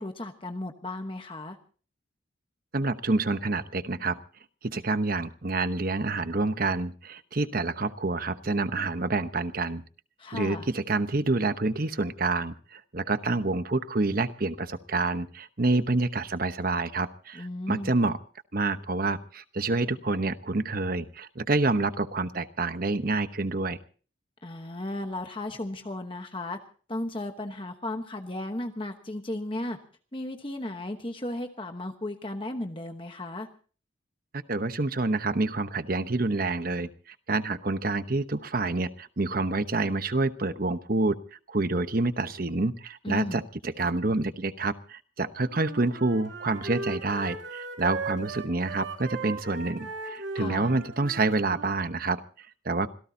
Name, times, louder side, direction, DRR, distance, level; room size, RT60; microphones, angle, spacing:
voice 1, 0.0-1.6 10.2-10.7 17.3-17.9 24.4-26.6 26.9-29.8 30.1-33.5 43.0-43.4 50.3-50.7, left 1 dB, 25° left, 6 dB, 1.1 m, -35 dB
voice 2, 2.7-4.2 4.6-9.8 10.3-18.2 18.5-23.8 34.3-41.1 41.5-52.9, right 3 dB, 45° right, 11 dB, 1.0 m, -28 dB
Wind instrument woodwind instrument, 45.5-51.8, right 3 dB, 70° right, 5.4 m, -37 dB
26.0 x 17.0 x 2.8 m, 0.40 s
head